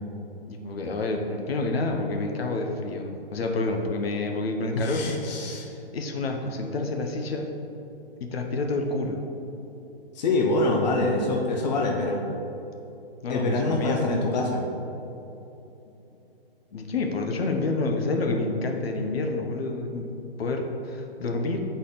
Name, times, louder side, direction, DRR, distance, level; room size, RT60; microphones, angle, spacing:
voice 1, 0.5-5.1 5.5-7.5 8.2-9.2 13.2-14.1 16.7-21.6, left 3 dB, 75° left, 3 dB, 0.9 m, -28 dB
voice 2, 4.7-5.7 10.1-12.2 13.3-14.6, left 2 dB, 45° left, 0 dB, 0.7 m, -25 dB
8.1 x 4.1 x 4.0 m, 3.0 s
hypercardioid pair, 160°, 31 cm